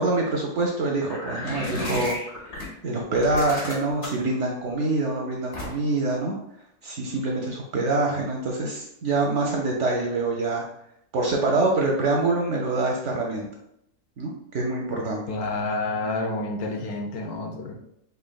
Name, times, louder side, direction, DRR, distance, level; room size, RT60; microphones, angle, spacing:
voice 1, 0.0-2.1 2.8-6.3 6.8-10.6 11.1-13.5 14.2-15.2, right 2 dB, 60° right, 0 dB, 0.8 m, -25 dB
sound 1, 1.1-2.7 3.1-4.3 5.5-6.0, left 1 dB, 50° left, 1.3 m, -32 dB
voice 2, 15.3-17.7, left 2 dB, 75° left, 1 dB, 1.2 m, -29 dB
5.5 x 2.8 x 2.2 m, 0.76 s
omnidirectional pair, 1.7 m